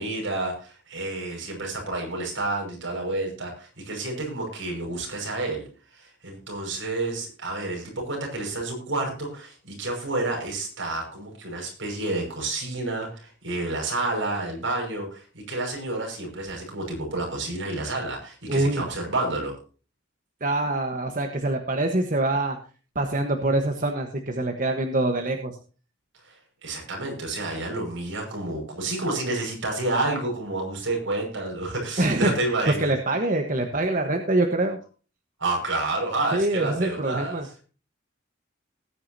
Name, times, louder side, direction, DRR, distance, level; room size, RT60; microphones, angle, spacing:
voice 1, 0.0-19.6 26.2-26.4 26.6-32.9 35.4-37.4, right 2 dB, 70° right, 1 dB, 5.8 m, -29 dB
voice 2, 18.5-18.8 20.4-22.6 22.9-25.5 32.0-32.3 32.7-34.8 36.3-37.5, right 2 dB, 40° right, 4 dB, 1.3 m, -25 dB
19.5 x 9.3 x 2.8 m, 0.37 s
head